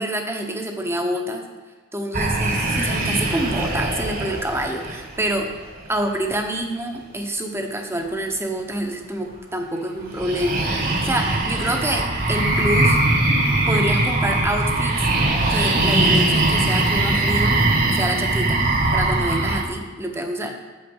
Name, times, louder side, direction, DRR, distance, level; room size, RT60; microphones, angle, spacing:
voice 1, 0.0-1.4 1.9-5.5 5.9-10.6 11.0-13.0 13.7-15.1 15.5-17.6 17.9-18.6 18.9-20.5, right 1 dB, 15° right, 3 dB, 1.1 m, -27 dB
sound 1, 2.1-5.8 10.1-19.6, right 2 dB, 45° right, 1.6 m, -21 dB
8.8 x 7.6 x 5.5 m, 1.4 s
head